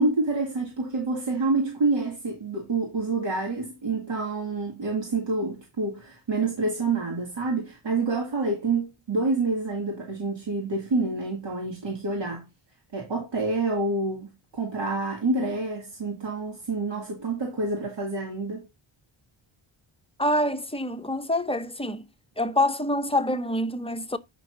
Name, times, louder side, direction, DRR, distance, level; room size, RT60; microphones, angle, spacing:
voice 1, 0.0-12.4 12.9-14.3 14.5-18.7, right 3 dB, 60° right, 2.5 m, -27 dB
voice 2, 20.2-22.0 22.4-24.2, left 1 dB, 10° left, 0.8 m, -26 dB
9.0 x 6.1 x 2.6 m
wide cardioid pair, 120°, 48 cm